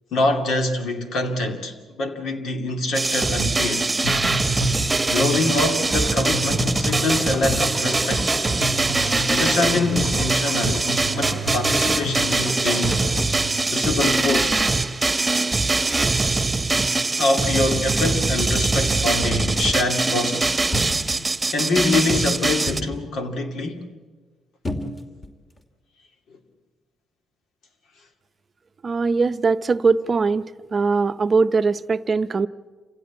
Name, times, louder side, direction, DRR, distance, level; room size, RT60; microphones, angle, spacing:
voice 1, 0.1-4.0 5.1-8.4 9.3-13.0 13.7-14.6 17.2-20.6 21.5-23.8, left 2 dB, 75° left, 2.5 m, -25 dB
sound 1, 2.9-22.8, right 3 dB, 15° right, 1.3 m, -22 dB
sound 2, 4.0-13.6, equal, 50° left, 7.4 m, -31 dB
sound 3, 20.7-21.3 22.7-23.0 24.6-25.3 25.6-25.7, left 1 dB, 30° left, 2.6 m, -30 dB
voice 2, 28.8-30.4 30.7-32.5, right 4 dB, 35° right, 0.6 m, -20 dB
28.5 x 16.0 x 8.4 m
cardioid pair, 90°, 0 cm